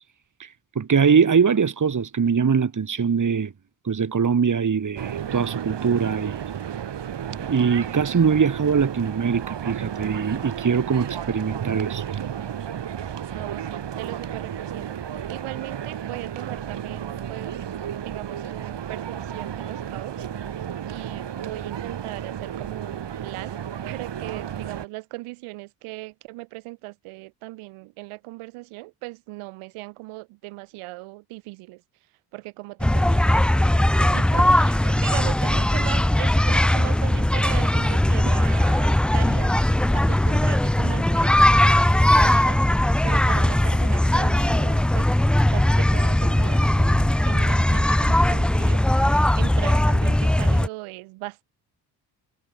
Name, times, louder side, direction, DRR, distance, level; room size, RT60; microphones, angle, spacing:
voice 1, 0.8-3.5 3.8-6.4 7.3-12.0, right 6 dB, 35° right, 2.5 m, -22 dB
sound 1, 5.0-24.9, right 9 dB, 55° right, 4.4 m, -33 dB
voice 2, 13.3-17.6 18.0-20.3 20.9-31.8 32.3-33.5 34.0-39.5 39.9-45.1 45.5-51.4, right 22 dB, 80° right, 6.4 m, -38 dB
sound 2, 32.8-50.7, left 1 dB, ahead, 0.3 m, -19 dB
hypercardioid pair, 45°, 49 cm